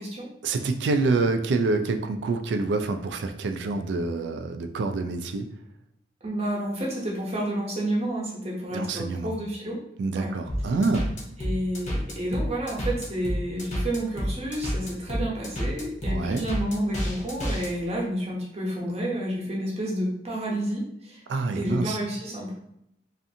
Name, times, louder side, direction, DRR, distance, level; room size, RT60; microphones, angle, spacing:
voice 1, 0.4-5.5 8.7-9.3 10.0-11.1 16.1-16.4 21.3-22.0, right 3 dB, 70° right, 7 dB, 0.3 m, -26 dB
voice 2, 6.2-9.8 10.1-10.3 11.4-21.2 21.5-22.6, right 1 dB, 40° right, -3 dB, 0.8 m, -30 dB
sound 1, 10.5-17.7, equal, 40° left, 0.7 m, -29 dB
2.5 x 2.5 x 2.6 m, 0.77 s
head